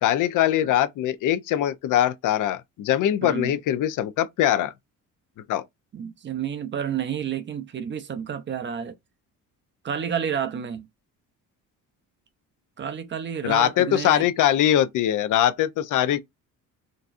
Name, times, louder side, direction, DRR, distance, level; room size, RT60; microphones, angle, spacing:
voice 1, 0.0-4.7 5.5-5.6 13.4-16.2, left 11 dB, 65° left, 0.5 m, -22 dB
voice 2, 3.2-3.6 5.9-8.9 9.8-10.9 12.8-14.2, right 8 dB, 35° right, 0.5 m, -30 dB
4.0 x 2.3 x 2.5 m
cardioid pair, 130°, 34 cm